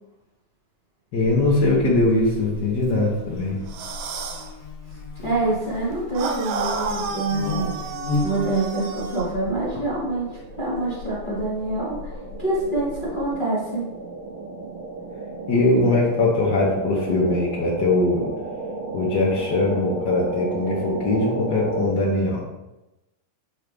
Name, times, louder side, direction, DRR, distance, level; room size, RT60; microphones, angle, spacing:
voice 1, 1.1-3.6 15.5-18.3 18.9-22.4, left 2 dB, 80° left, -4 dB, 0.9 m, -21 dB
Buzz, 1.2-13.3, left 3 dB, 55° left, 1.9 m, -35 dB
sound 1, 3.7-4.5 6.1-9.3, right 5 dB, 80° right, 2.3 m, -31 dB
voice 2, 5.2-7.9 8.2-12.1 12.4-13.9, right 2 dB, 25° left, -8 dB, 1.1 m, -26 dB
sound 2, 9.0-21.9, right 3 dB, 55° right, 2.6 m, -34 dB
9.2 x 3.9 x 3.4 m, 0.97 s
omnidirectional pair, 3.7 m